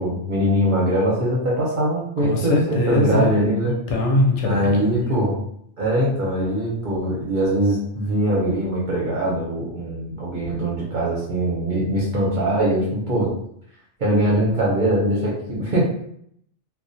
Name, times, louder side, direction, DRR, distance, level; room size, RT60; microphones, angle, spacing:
voice 1, 0.0-3.8 4.4-5.4 5.8-13.3 14.0-15.9, right 1 dB, 50° right, -5 dB, 0.7 m, -22 dB
voice 2, 2.2-5.2, left 1 dB, 70° left, 0 dB, 0.8 m, -22 dB
2.2 x 2.2 x 2.6 m, 0.69 s
omnidirectional pair, 1.3 m